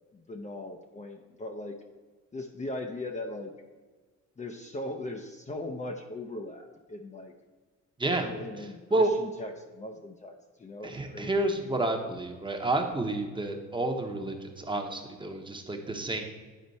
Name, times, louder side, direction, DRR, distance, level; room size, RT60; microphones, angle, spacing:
voice 1, 0.1-1.8 2.3-3.5 4.4-7.3 8.2-11.5, left 2 dB, 25° left, 3 dB, 0.5 m, -39 dB
voice 2, 10.8-16.2, right 2 dB, 15° right, 4 dB, 0.9 m, -30 dB
9.1 x 4.3 x 4.0 m, 1.4 s
cardioid pair, 90°, 30 cm